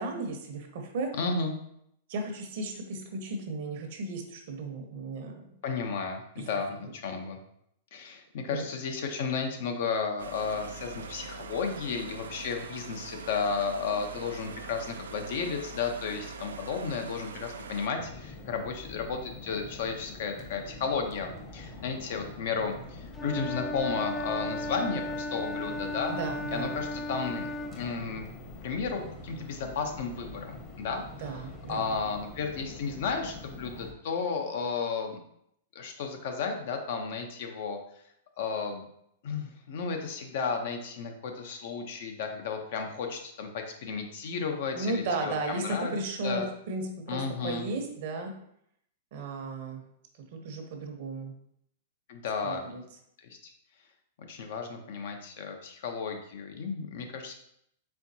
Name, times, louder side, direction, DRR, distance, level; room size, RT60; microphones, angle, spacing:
voice 1, 0.0-1.1 2.1-5.5 6.4-6.5 8.5-8.6 26.1-26.7 31.2-32.0 44.7-48.3 49.1-49.8 50.3-51.3 52.4-52.8, right 2 dB, 60° right, 4 dB, 0.8 m, -35 dB
voice 2, 1.2-1.6 5.6-7.4 7.9-26.2 26.5-27.5 27.7-28.3 28.6-31.3 31.7-35.2 35.7-37.8 38.4-38.8 39.2-46.0 46.2-46.5 47.1-47.7 52.1-52.8 53.2-53.5 54.3-57.3, left 5 dB, 65° left, 4 dB, 0.7 m, -33 dB
sound 1, 10.2-17.9, right 4 dB, 90° right, 0.3 m, -43 dB
sound 2, 17.9-33.9, left 3 dB, 30° left, 0.9 m, -45 dB
Wind instrument woodwind instrument, 23.1-27.8, left 1 dB, 15° left, 0.4 m, -35 dB
4.4 x 3.5 x 2.7 m, 0.73 s
hypercardioid pair, 125°, 0 cm